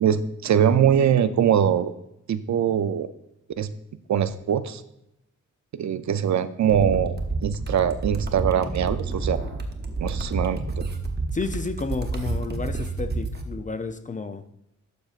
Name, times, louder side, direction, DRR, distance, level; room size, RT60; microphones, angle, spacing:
voice 1, 0.0-1.9 2.3-3.1 3.6-3.7 4.1-4.8 5.7-7.1 7.4-9.4 10.0-10.8, right 8 dB, 70° right, 0.5 m, -22 dB
sound 1, 6.7-13.4, right 3 dB, 35° right, 0.8 m, -29 dB
voice 2, 11.3-14.4, left 4 dB, 25° left, 0.4 m, -31 dB
12.0 x 6.4 x 2.4 m
wide cardioid pair, 165°, 30 cm